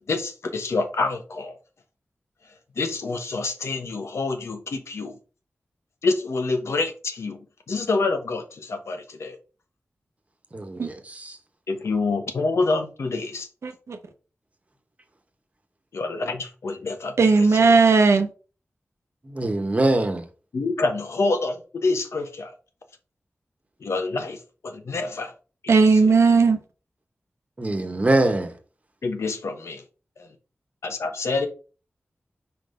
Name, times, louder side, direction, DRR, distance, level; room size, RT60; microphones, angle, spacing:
voice 1, 0.1-1.6 2.8-5.2 6.0-9.4 11.7-13.5 15.9-17.7 20.5-22.5 23.8-25.3 25.6-26.1 29.0-29.8 30.2-30.3 30.8-31.5, left 3 dB, 90° left, 1.0 m, -27 dB
voice 2, 10.5-11.4 19.3-20.2 27.6-28.5, right 2 dB, 30° right, 1.1 m, -23 dB
voice 3, 13.6-14.0 17.2-18.3 25.7-26.6, right 4 dB, 90° right, 0.9 m, -17 dB
4.8 x 3.9 x 4.9 m
wide cardioid pair, 90°, 5 cm